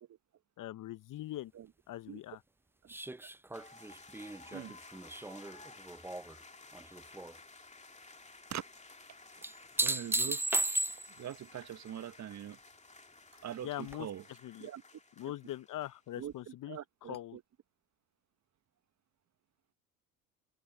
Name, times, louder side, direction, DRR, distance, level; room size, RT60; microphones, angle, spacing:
voice 1, 0.6-1.5 1.9-2.4 13.6-14.1 14.4-14.7 15.2-16.8 17.1-17.4, left 14 dB, 45° left, 1.1 m, -42 dB
sound 1, 2.9-6.4 6.7-7.3 9.4-11.3 13.9-14.0, right 2 dB, 5° right, 0.6 m, -35 dB
sound 2, 3.5-16.2, left 3 dB, 15° left, 2.6 m, -55 dB
voice 2, 4.5-5.6 8.5-8.6 9.1-9.4 9.8-10.4 11.2-12.6 13.3-14.2 14.6-14.8 16.2-17.4, right 10 dB, 40° right, 1.3 m, -44 dB
hypercardioid pair, 60°, 43 cm